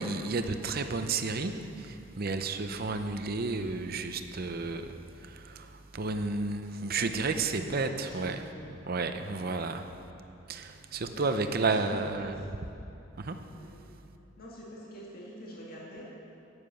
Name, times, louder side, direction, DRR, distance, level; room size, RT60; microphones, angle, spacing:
voice 1, 0.0-8.4 8.9-9.9 10.5-12.3 13.2-13.4, right 3 dB, 45° right, 8 dB, 0.7 m, -32 dB
voice 2, 6.6-8.6 11.0-12.3 13.5-14.0 14.4-16.0, equal, 45° left, -5 dB, 2.1 m, -47 dB
10.0 x 9.7 x 7.0 m, 2.7 s
head